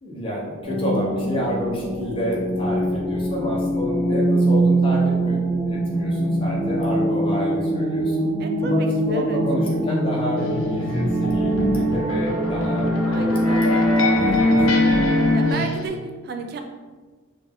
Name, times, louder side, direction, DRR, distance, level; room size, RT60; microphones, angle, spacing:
voice 1, 0.0-8.3 8.6-13.6 14.0-15.0, equal, 25° left, -4 dB, 0.9 m, -29 dB
sound 1, 0.6-15.5, right 1 dB, 35° right, 1.0 m, -22 dB
voice 2, 8.4-9.4 13.0-13.9 15.3-16.6, right 3 dB, 50° right, 5 dB, 0.4 m, -33 dB
sound 2, 10.4-15.9, left 2 dB, 75° left, 0.7 m, -26 dB
4.2 x 2.4 x 3.5 m, 1.4 s
head